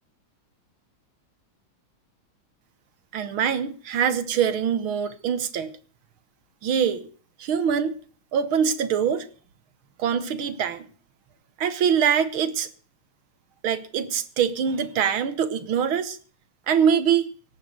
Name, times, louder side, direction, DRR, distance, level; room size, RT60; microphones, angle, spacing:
voice 1, 3.1-5.7 6.6-7.1 7.4-8.0 8.3-9.3 10.0-10.9 11.6-12.7 13.6-16.2 16.7-17.3, right 7 dB, 75° right, 13 dB, 2.0 m, -24 dB
17.5 x 10.0 x 6.6 m, 0.43 s
omnidirectional pair, 2.3 m